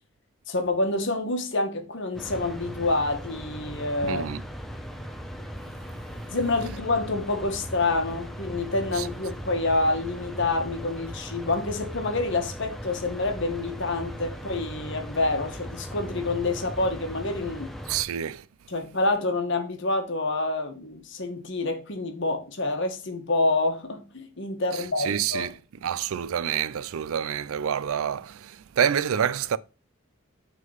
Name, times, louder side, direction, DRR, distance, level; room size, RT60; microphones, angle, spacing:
voice 1, 0.5-4.3 6.3-17.7 18.7-25.5, left 2 dB, 55° left, 1.3 m, -27 dB
sound 1, 2.1-18.0, equal, ahead, 0.6 m, -38 dB
voice 2, 4.0-4.4 8.9-9.1 17.9-18.4 24.7-25.5 25.8-29.6, right 8 dB, 75° right, 0.4 m, -27 dB
6.2 x 3.8 x 5.5 m
head